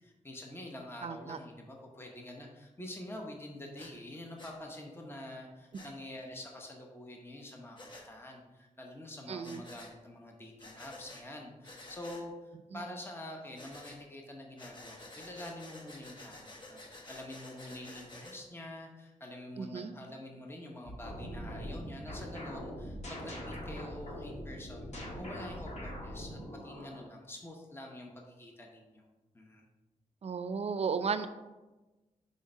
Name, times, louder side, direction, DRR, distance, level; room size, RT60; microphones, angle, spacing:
voice 1, 0.0-7.8 8.0-12.3 12.7-24.9 25.2-29.0 29.3-29.7, left 1 dB, 15° left, 1 dB, 0.9 m, -46 dB
voice 2, 1.0-1.4 9.3-9.6 12.7-12.9 19.6-19.9 30.2-31.3, right 5 dB, 50° right, 11 dB, 0.5 m, -34 dB
Breathing, 3.8-3.9 4.4-4.6 5.7-5.9 7.8-8.1 9.4-9.9 10.6-11.2 11.6-12.2 13.5-14.0 14.6-18.4, left 2 dB, 35° left, 1.1 m, -50 dB
sound 1, 20.9-27.1, equal, 55° left, 1.5 m, -42 dB
5.2 x 3.7 x 5.3 m, 1.1 s
cardioid pair, 80°, 14 cm